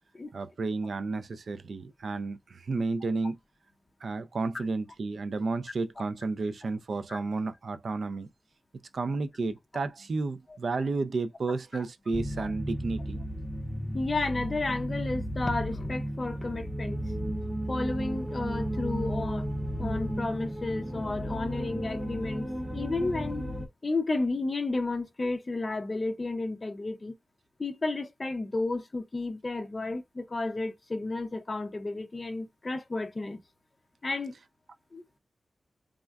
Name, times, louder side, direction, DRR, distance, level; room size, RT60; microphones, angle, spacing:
voice 1, 0.3-3.4 4.0-8.3 8.9-13.2, right 3 dB, 75° right, 0.3 m, -32 dB
sound 1, 12.1-23.7, equal, 15° right, 0.8 m, -34 dB
voice 2, 13.9-17.0 17.7-19.5 19.8-23.4 23.8-27.1 27.6-33.4 34.0-34.3 34.9-35.0, left 2 dB, 35° left, 0.4 m, -32 dB
3.5 x 2.2 x 2.2 m
wide cardioid pair, 105°, 0 cm